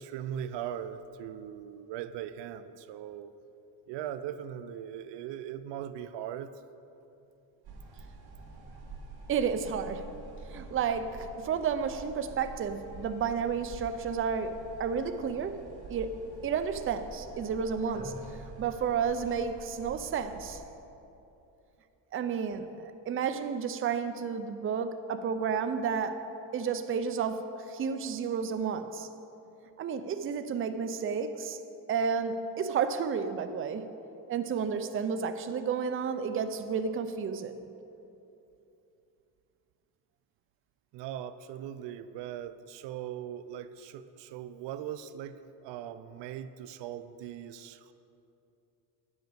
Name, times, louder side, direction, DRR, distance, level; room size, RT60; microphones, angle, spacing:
voice 1, 0.0-3.3 3.9-6.5 40.9-47.9, right 10 dB, 85° right, 12 dB, 0.5 m, -40 dB
sound 1, 7.6-20.6, right 3 dB, 60° right, 2.0 m, -47 dB
voice 2, 9.3-10.1 10.5-15.6 15.9-18.2 18.6-20.6 22.1-26.2 26.5-29.1 29.8-31.6 31.9-33.9 34.3-37.5, right 6 dB, 30° right, 9 dB, 0.5 m, -31 dB
9.5 x 5.2 x 7.8 m, 2.8 s
cardioid pair, 130°, 42 cm